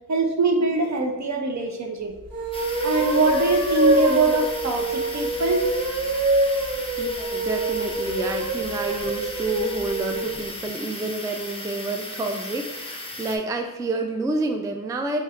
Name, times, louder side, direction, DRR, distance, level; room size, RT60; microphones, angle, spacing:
voice 1, 0.1-2.1 2.8-5.6, right 3 dB, 55° right, 4 dB, 0.6 m, -23 dB
sound 1, 2.2-10.4, right 2 dB, 85° right, 1.3 m, -25 dB
sound 2, 2.5-13.4, left 1 dB, 15° left, 0.7 m, -36 dB
voice 2, 7.0-15.2, right 2 dB, 10° right, 4 dB, 0.3 m, -29 dB
5.5 x 3.0 x 2.5 m, 1.1 s
cardioid pair, 70°, 34 cm